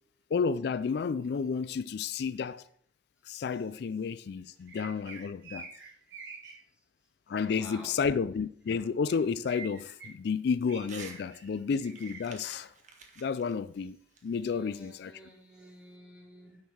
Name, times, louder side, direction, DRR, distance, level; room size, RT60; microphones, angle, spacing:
voice 1, 0.3-2.6 3.3-5.7 7.3-12.7 13.2-14.0 14.2-15.2, left 5 dB, 60° left, 0.3 m, -31 dB
sound 1, 4.7-6.5 9.1-9.2 9.4-10.1 10.7-11.4 11.8-12.2, right 5 dB, 70° right, 5.5 m, -46 dB
voice 2, 7.3-8.0 11.3-11.6 14.4-16.6, equal, 5° right, 3.4 m, -52 dB
Crumpling crinkling / Tearing, 10.8-11.2 11.5-14.9, right 5 dB, 40° right, 1.7 m, -51 dB
10.0 x 6.4 x 6.2 m
head